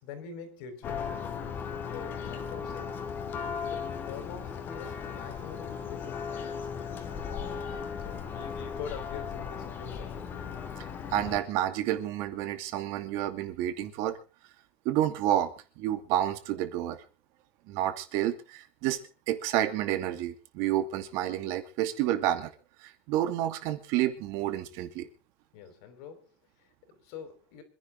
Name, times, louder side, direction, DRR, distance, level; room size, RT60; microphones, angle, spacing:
voice 1, 0.0-1.3 1.9-3.0 3.6-7.3 8.0-10.3 25.5-27.6, left 6 dB, 75° left, 8 dB, 5.1 m, -45 dB
Church bell, 0.8-11.4, left 6 dB, 35° left, 2.6 m, -37 dB
voice 2, 11.1-14.2 14.8-17.0 17.7-19.0 19.3-22.5 22.8-25.1, right 12 dB, 65° right, 9 dB, 2.5 m, -29 dB
26.0 x 11.0 x 3.8 m, 0.35 s
cardioid pair, 155°, 6 cm